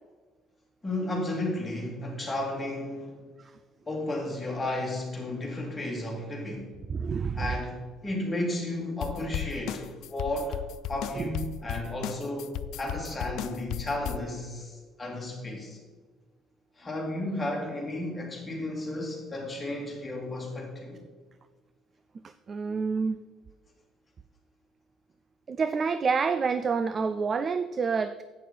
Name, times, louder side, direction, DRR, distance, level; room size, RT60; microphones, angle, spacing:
voice 1, 0.8-3.2 3.9-6.7 7.3-10.6 10.9-15.8 16.8-21.0, left 1 dB, 10° left, -2 dB, 2.4 m, -33 dB
voice 2, 6.9-7.5 11.2-11.3 22.2-23.2 25.5-28.2, right 5 dB, 30° right, 12 dB, 0.3 m, -28 dB
sound 1, 9.0-14.2, left 11 dB, 70° left, 0.3 m, -35 dB
11.0 x 8.3 x 4.2 m, 1.4 s
cardioid pair, 150°, 0 cm